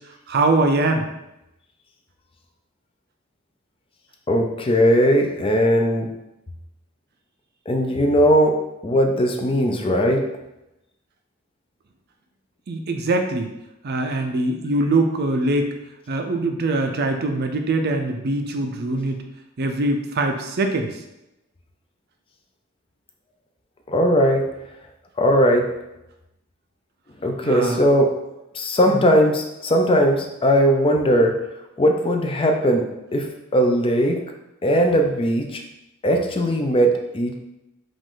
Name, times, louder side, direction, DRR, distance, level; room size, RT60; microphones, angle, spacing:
voice 1, 0.3-1.1 12.7-13.5 13.8-15.7 16.1-19.2 19.6-20.9 27.4-27.8 28.9-29.1, right 2 dB, 50° right, 5 dB, 0.5 m, -22 dB
voice 2, 4.3-6.1 7.7-10.3 23.9-24.5 25.2-25.7 27.2-28.2 28.5-31.4 31.8-33.3 33.5-34.2 34.6-35.6 36.0-37.3, equal, 25° left, 3 dB, 0.5 m, -19 dB
5.1 x 2.5 x 3.7 m, 0.90 s
head